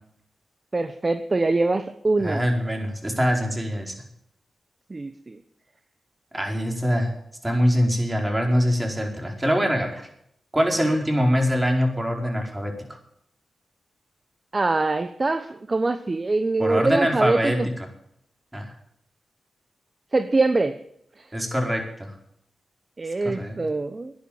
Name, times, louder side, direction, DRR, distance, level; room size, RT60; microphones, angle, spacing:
voice 1, 0.7-2.4 4.9-5.4 14.5-17.7 20.1-20.8 23.0-24.1, right 3 dB, 40° right, 10 dB, 1.0 m, -23 dB
voice 2, 2.2-3.9 6.3-7.1 7.4-10.0 10.5-12.7 16.6-17.6 18.5-18.7 21.3-22.1 23.2-23.6, equal, 20° right, 2 dB, 4.9 m, -23 dB
12.0 x 10.5 x 8.8 m, 0.71 s
cardioid pair, 50°, 0 cm